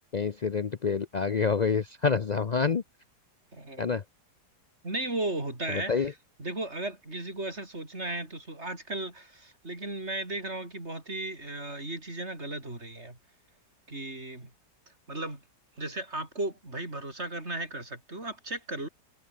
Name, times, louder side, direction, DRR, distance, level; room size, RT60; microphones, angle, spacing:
voice 1, 0.1-2.8 3.8-4.0 5.9-6.1, left 5 dB, 85° left, 0.3 m, -27 dB
voice 2, 3.5-3.9 4.8-13.2 13.9-14.5 15.1-15.4 15.8-18.9, right 2 dB, 40° right, 5.6 m, -35 dB
omnidirectional pair, 1.8 m